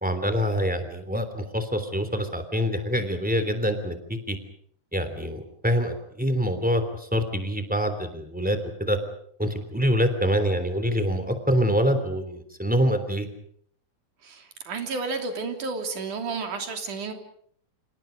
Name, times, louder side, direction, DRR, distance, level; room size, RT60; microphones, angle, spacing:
voice 1, 0.0-4.4 4.9-9.0 9.4-13.3, equal, 5° right, 9 dB, 2.9 m, -25 dB
voice 2, 14.2-17.1, right 4 dB, 80° right, 4 dB, 4.6 m, -31 dB
29.5 x 26.5 x 5.2 m, 0.65 s
omnidirectional pair, 3.5 m